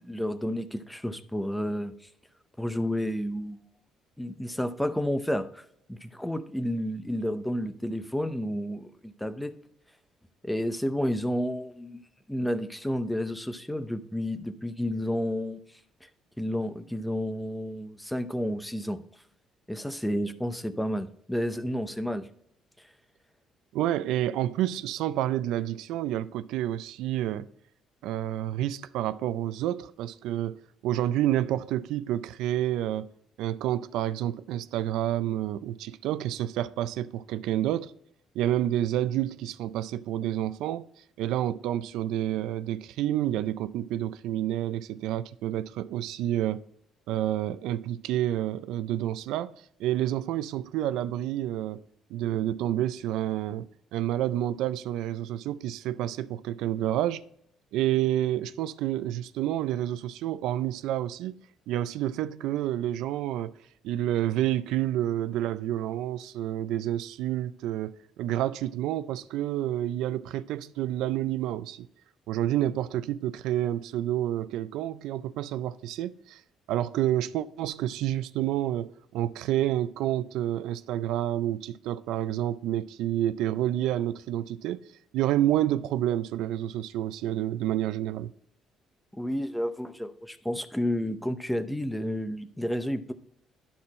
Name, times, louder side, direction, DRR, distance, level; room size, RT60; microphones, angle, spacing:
voice 1, 0.0-1.9 2.6-3.6 4.2-9.5 10.4-12.0 12.3-15.6 16.4-19.0 19.7-22.3 89.2-93.1, equal, 5° left, 0.6 m, -31 dB
voice 2, 23.7-27.5 28.0-33.1 33.4-37.9 38.3-40.9 41.2-46.6 47.1-49.5 49.8-51.8 52.1-57.2 57.7-61.4 61.7-63.5 63.8-71.9 72.3-76.4 76.7-84.8 85.1-88.3, right 12 dB, 85° right, 0.4 m, -29 dB
12.0 x 4.3 x 4.2 m
cardioid pair, 135°, 0 cm